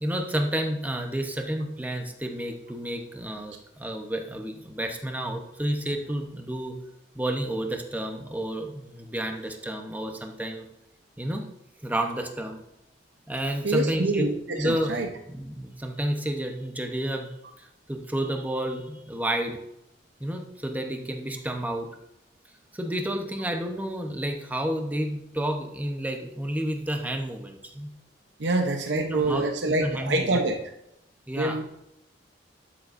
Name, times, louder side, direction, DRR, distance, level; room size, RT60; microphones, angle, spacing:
voice 1, 0.0-6.8 7.1-10.7 11.2-11.5 11.8-12.6 13.3-14.3 14.6-17.3 17.6-19.6 20.2-21.9 22.7-27.9 28.9-30.4 31.3-31.6, right 1 dB, 10° right, 3 dB, 0.9 m, -30 dB
voice 2, 13.6-15.1 28.4-30.6 31.4-31.6, right 2 dB, 75° right, 4 dB, 0.8 m, -26 dB
12.0 x 7.3 x 2.6 m, 0.81 s
head